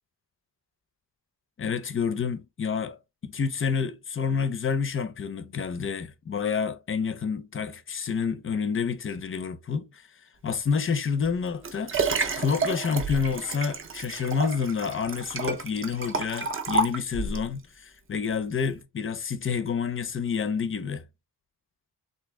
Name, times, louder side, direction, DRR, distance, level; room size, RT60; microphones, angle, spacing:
voice 1, 1.6-3.0 3.2-10.0 10.4-12.1 12.4-21.0, left 6 dB, 30° left, 0.5 m, -29 dB
Liquid, 11.2-17.5 18.1-18.2, right 3 dB, 30° right, 0.5 m, -30 dB
3.5 x 2.8 x 3.1 m
wide cardioid pair, 155°, 41 cm